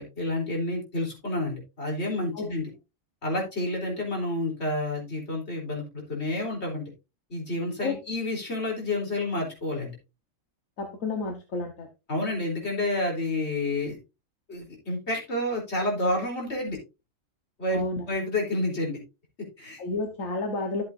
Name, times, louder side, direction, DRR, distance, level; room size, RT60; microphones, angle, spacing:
voice 1, 0.0-2.7 3.2-6.9 7.3-9.9 12.1-14.0 14.5-16.8 17.6-17.8 18.1-19.0 19.4-19.8, left 1 dB, 55° left, -1 dB, 3.9 m, -29 dB
voice 2, 10.8-11.9 17.7-18.0 19.8-20.8, left 3 dB, 85° left, 4 dB, 1.6 m, -30 dB
12.5 x 7.6 x 2.6 m, 0.27 s
omnidirectional pair, 1.4 m